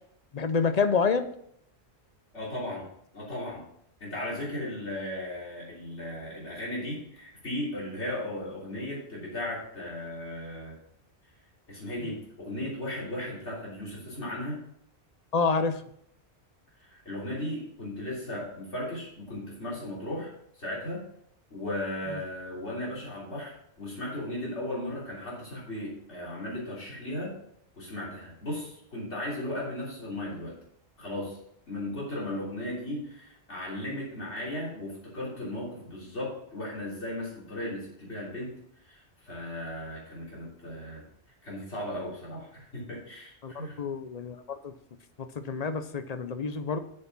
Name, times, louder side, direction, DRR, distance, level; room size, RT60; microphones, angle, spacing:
voice 1, 0.3-1.3 12.0-12.1 15.3-15.8 22.1-22.2 43.4-44.4 44.6-44.7 45.4-46.8, left 5 dB, 45° left, 10 dB, 0.6 m, -28 dB
voice 2, 2.3-2.9 3.1-3.6 4.0-10.8 11.7-14.6 16.8-20.3 20.6-21.0 21.5-27.3 27.8-30.5 31.0-31.4 31.7-38.5 38.8-41.0 41.4-42.5 42.7-43.8, left 1 dB, 80° left, -5 dB, 3.6 m, -36 dB
7.0 x 6.6 x 5.9 m, 0.69 s
omnidirectional pair, 1.1 m